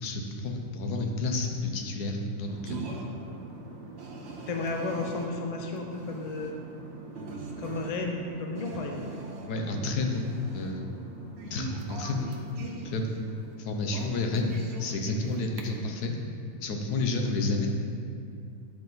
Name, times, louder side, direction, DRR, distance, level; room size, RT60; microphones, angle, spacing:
voice 1, 0.0-2.8 9.5-10.8 11.5-13.1 13.6-14.5 14.8-16.1 16.6-17.7, left 2 dB, 85° left, 3 dB, 1.3 m, -30 dB
sound 1, 2.5-15.6, right 3 dB, 55° right, 0.9 m, -42 dB
voice 2, 4.5-6.5 7.6-9.0, left 2 dB, 50° left, 1 dB, 0.4 m, -33 dB
9.3 x 4.8 x 3.9 m, 2.4 s
omnidirectional pair, 1.6 m